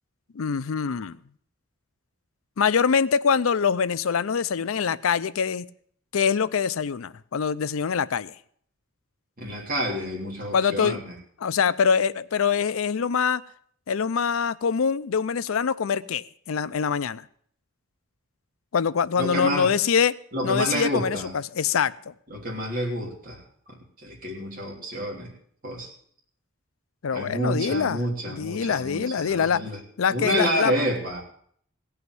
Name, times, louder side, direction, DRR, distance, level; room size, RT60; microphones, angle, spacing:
voice 1, 0.3-1.2 2.6-5.7 6.1-8.3 10.5-11.0 11.4-13.4 13.9-17.2 18.7-20.1 20.4-21.9 27.0-29.6 30.0-30.8, left 6 dB, 80° left, 0.5 m, -24 dB
voice 2, 9.4-11.0 19.2-19.7 20.3-21.3 22.3-23.4 24.0-25.3 25.6-25.9 27.1-29.8 30.1-31.2, equal, 45° right, 3.1 m, -29 dB
16.5 x 5.7 x 7.7 m
head